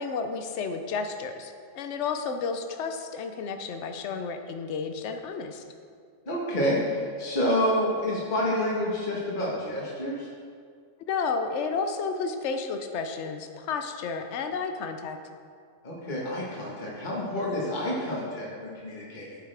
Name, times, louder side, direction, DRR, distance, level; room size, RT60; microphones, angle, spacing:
voice 1, 0.0-5.6 11.1-15.2, left 5 dB, 75° left, 6 dB, 1.0 m, -32 dB
voice 2, 6.3-10.3 15.8-19.4, left 1 dB, 45° left, -4 dB, 1.5 m, -28 dB
11.5 x 8.3 x 3.4 m, 2.2 s
omnidirectional pair, 1.2 m